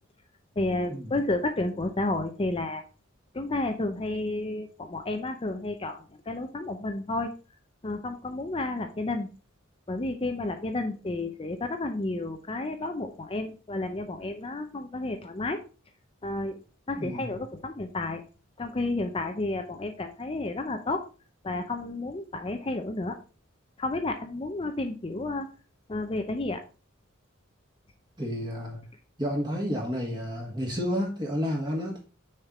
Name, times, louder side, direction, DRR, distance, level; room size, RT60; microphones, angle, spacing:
voice 1, 0.6-2.8 3.3-7.3 7.8-9.3 9.9-15.6 16.2-16.6 16.9-18.2 18.6-21.0 21.4-23.2 23.8-25.5 25.9-26.6, left 2 dB, 25° left, 6 dB, 0.6 m, -31 dB
voice 2, 17.0-17.3 28.2-28.8 29.2-32.0, equal, 20° right, -1 dB, 1.6 m, -30 dB
6.5 x 4.5 x 4.8 m, 0.35 s
head